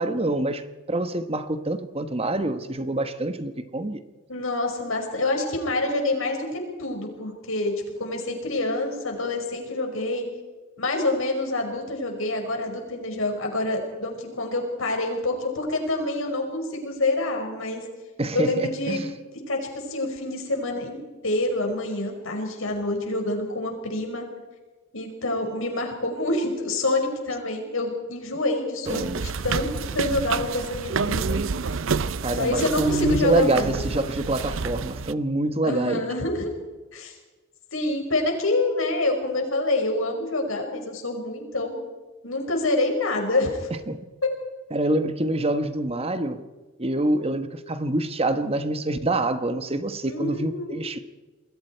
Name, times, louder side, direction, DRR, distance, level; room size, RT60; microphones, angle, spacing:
voice 1, 0.0-4.0 18.2-19.1 28.9-29.2 32.2-36.0 43.9-44.1 44.7-46.4 46.8-51.0, right 2 dB, 30° right, 1.2 m, -26 dB
voice 2, 4.3-7.7 8.0-10.2 10.8-17.8 18.3-19.0 19.5-21.0 21.2-24.3 24.9-29.7 29.9-31.4 31.7-31.8 32.3-33.8 35.6-36.5 36.9-37.1 37.7-41.8 42.2-43.7 50.0-50.8, left 2 dB, 90° left, 5.3 m, -27 dB
sound 1, 28.9-35.1, right 5 dB, 75° right, 0.7 m, -29 dB
28.0 x 21.0 x 4.6 m
head